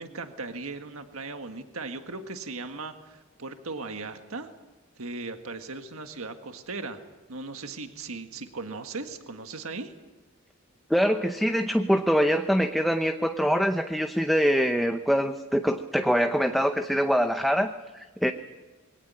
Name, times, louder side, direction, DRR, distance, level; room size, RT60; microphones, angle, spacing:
voice 1, 0.0-4.5 5.0-7.0 7.3-9.9, right 3 dB, 70° right, 6 dB, 1.7 m, -37 dB
voice 2, 10.9-18.3, equal, ahead, 6 dB, 0.7 m, -24 dB
22.5 x 17.5 x 8.8 m, 1.3 s
head